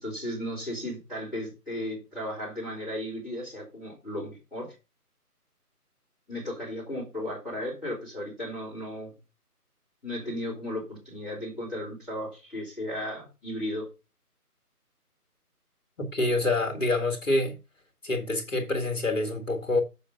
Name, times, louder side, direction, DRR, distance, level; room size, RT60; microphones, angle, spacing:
voice 1, 0.0-4.7 6.3-9.1 10.0-13.9, left 1 dB, ahead, 3.0 m, -35 dB
voice 2, 16.0-17.6 18.0-19.8, left 2 dB, 55° left, 1.8 m, -26 dB
7.1 x 5.3 x 5.6 m
figure-of-eight pair, 160°, 46 cm